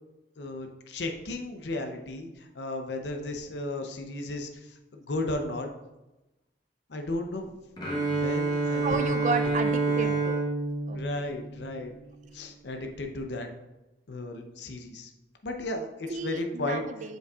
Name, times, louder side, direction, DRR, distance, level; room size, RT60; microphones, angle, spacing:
voice 1, 0.4-5.7 6.9-7.6 8.1-9.2 9.9-10.2 10.9-11.9 12.3-13.5 14.1-15.1 15.4-16.8, left 2 dB, 80° left, 4 dB, 0.7 m, -35 dB
Bowed string instrument, 7.8-11.9, right 3 dB, 25° left, 1.1 m, -28 dB
voice 2, 8.8-10.4 10.9-11.3 16.1-17.2, right 4 dB, 40° right, 8 dB, 0.4 m, -32 dB
7.5 x 5.4 x 2.4 m, 1.0 s
head